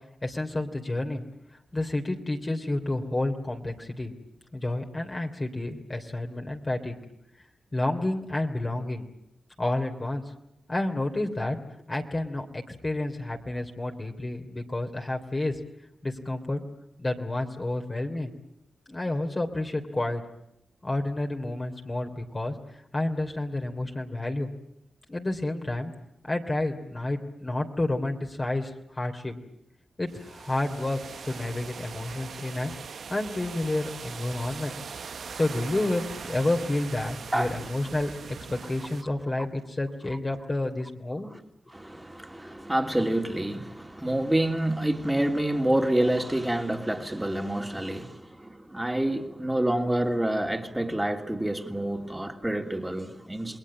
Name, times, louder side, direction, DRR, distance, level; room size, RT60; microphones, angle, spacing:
voice 1, 0.2-1.2 1.7-4.1 4.5-7.0 7.7-9.1 9.6-10.2 10.7-11.6 11.9-15.6 16.0-16.6 17.0-18.3 18.9-20.2 20.8-24.5 25.1-25.9 26.2-29.4 30.0-31.0 31.2-32.7 33.1-34.7 35.3-38.1 38.5-41.3, left 2 dB, 35° left, 3.1 m, -30 dB
sound 1, 30.1-39.0, right 6 dB, 75° right, 1.0 m, -41 dB
voice 2, 41.7-53.6, right 1 dB, 10° right, 2.8 m, -28 dB
28.5 x 20.5 x 8.7 m
cardioid pair, 55°, 0 cm